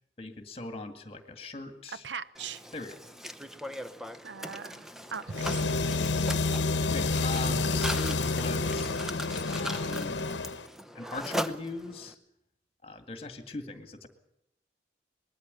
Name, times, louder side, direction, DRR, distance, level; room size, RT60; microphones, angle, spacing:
voice 1, 0.2-2.0 2.7-3.0 5.6-6.4 6.9-9.0 9.5-10.2 10.9-12.2 12.8-14.1, left 2 dB, 35° left, 8 dB, 2.0 m, -40 dB
voice 2, 2.0-2.6 4.2-5.5, right 6 dB, 85° right, 15 dB, 0.7 m, -40 dB
Mechanisms, 2.3-12.1, equal, ahead, 0.7 m, -40 dB
sound 1, 5.3-10.7, left 3 dB, 85° left, 1.0 m, -29 dB
20.5 x 13.0 x 9.6 m, 0.82 s
head